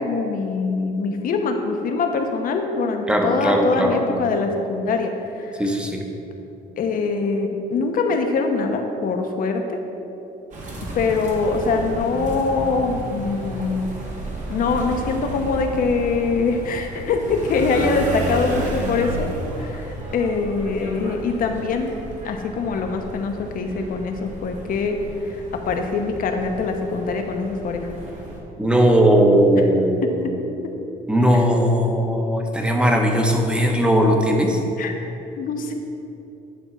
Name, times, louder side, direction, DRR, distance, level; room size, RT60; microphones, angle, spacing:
voice 1, 0.0-5.6 6.8-9.8 10.9-13.9 14.5-19.3 19.6-21.9 22.2-25.0 25.2-27.9 30.0-30.3 31.3-31.4 34.8-34.9 35.4-35.7, left 4 dB, 55° left, 4 dB, 0.9 m, -23 dB
voice 2, 3.1-4.2 5.6-6.0 28.6-30.2 31.1-34.6, equal, 5° right, 2 dB, 0.9 m, -18 dB
sound 1, 10.5-28.4, right 1 dB, 45° right, 1.6 m, -33 dB
10.5 x 3.5 x 5.7 m, 2.9 s
cardioid pair, 110°, 17 cm